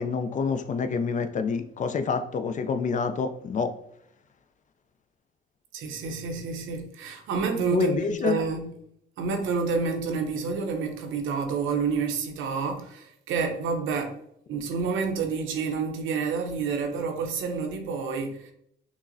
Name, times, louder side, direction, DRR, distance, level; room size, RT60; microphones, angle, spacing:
voice 1, 0.0-3.7 7.7-8.4, left 5 dB, 40° left, 0.4 m, -27 dB
voice 2, 5.7-8.7 9.2-14.2 14.5-18.5, right 5 dB, 80° right, 0.7 m, -29 dB
5.9 x 2.1 x 2.6 m
cardioid pair, 90°, 20 cm